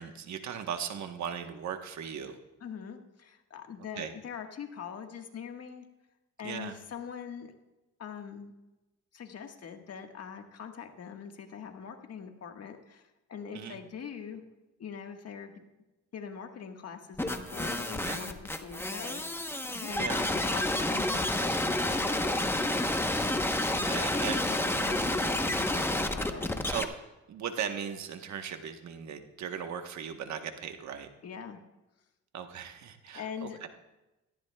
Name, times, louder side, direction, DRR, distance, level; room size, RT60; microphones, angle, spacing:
voice 1, 0.0-2.4 4.0-4.1 6.4-6.7 13.5-13.8 18.0-18.2 20.0-20.2 23.6-24.4 26.7-26.9 27.3-31.1 32.3-33.7, right 8 dB, 65° right, 7 dB, 1.2 m, -38 dB
voice 2, 2.6-5.8 6.4-7.5 8.0-8.5 9.1-14.4 14.8-15.6 16.1-22.8 23.7-26.6 31.2-31.6 33.1-33.7, left 7 dB, 55° left, 4 dB, 1.5 m, -43 dB
sound 1, 17.2-26.8, left 1 dB, 10° left, 0.9 m, -30 dB
17.5 x 14.5 x 2.3 m, 1.0 s
cardioid pair, 90°, 30 cm